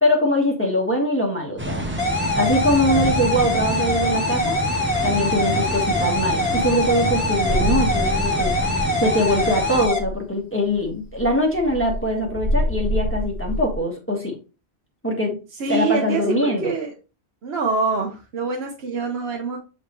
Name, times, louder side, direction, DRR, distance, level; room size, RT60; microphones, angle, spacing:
voice 1, 0.0-1.9 2.3-4.6 5.0-8.6 9.0-14.3 15.0-15.4 15.7-16.7, left 1 dB, 10° left, -1 dB, 1.5 m, -22 dB
sound 1, 1.6-9.9, equal, 10° right, 0.8 m, -27 dB
sound 2, 2.0-10.0, left 1 dB, 40° left, 1.4 m, -24 dB
sound 3, 7.4-9.1 9.4-9.5 9.8-10.2 10.8-13.8, equal, 55° left, 1.7 m, -27 dB
voice 2, 15.6-16.9 17.4-19.6, right 4 dB, 75° right, 2 dB, 1.2 m, -25 dB
7.5 x 4.1 x 3.1 m, 0.32 s
omnidirectional pair, 1.1 m